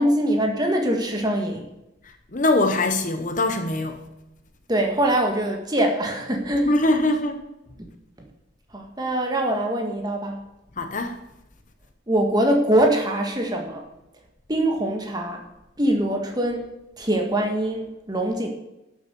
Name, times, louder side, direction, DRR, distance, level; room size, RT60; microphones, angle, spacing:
voice 1, 0.0-1.6 4.7-6.8 8.7-10.4 12.1-13.8 14.5-15.4 15.8-16.7 17.0-18.5, right 1 dB, 20° right, 1.8 m, -23 dB
voice 2, 2.3-4.0 6.6-7.4 10.8-11.2, left 2 dB, 40° left, 1.0 m, -22 dB
12.0 x 7.8 x 6.9 m
head